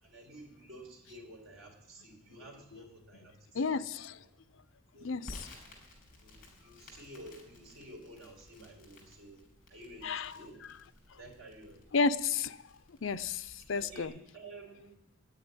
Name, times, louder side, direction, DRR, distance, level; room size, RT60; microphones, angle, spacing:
voice 1, 0.0-3.8 4.9-5.2 6.2-9.4 9.7-10.6 11.2-11.8 13.8-15.0, right 1 dB, 80° right, 1 dB, 4.0 m, -51 dB
voice 2, 3.5-4.2 5.0-5.5 10.0-10.4 11.9-12.6 13.0-14.1, left 4 dB, 70° left, 14 dB, 0.6 m, -32 dB
Crackle, 5.3-14.1, left 1 dB, 45° left, 5.6 m, -55 dB
10.5 x 9.5 x 9.8 m, 0.82 s
head